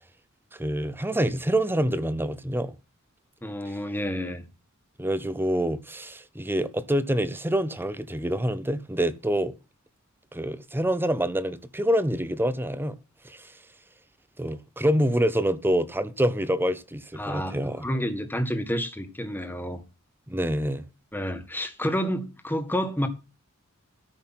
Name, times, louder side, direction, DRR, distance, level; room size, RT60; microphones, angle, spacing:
voice 1, 0.6-2.7 5.0-9.5 10.3-13.0 13.2-13.5 14.4-17.8 20.3-20.8, right 1 dB, 10° right, 0.7 m, -26 dB
voice 2, 3.4-4.5 17.2-19.8 21.1-23.1, equal, 10° left, 1.6 m, -29 dB
13.5 x 5.9 x 5.8 m
head